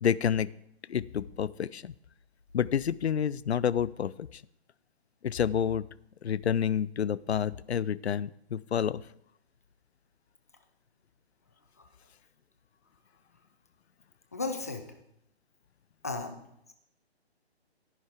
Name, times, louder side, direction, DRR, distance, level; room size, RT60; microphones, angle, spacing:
voice 1, 0.0-0.5 0.9-1.9 2.5-4.3 5.2-5.8 6.2-9.0, left 8 dB, 75° left, 20 dB, 0.5 m, -29 dB
voice 2, 14.3-14.9 16.0-16.4, left 3 dB, 15° left, 6 dB, 0.4 m, -34 dB
13.0 x 10.5 x 3.5 m, 0.77 s
figure-of-eight pair, 145°, 33 cm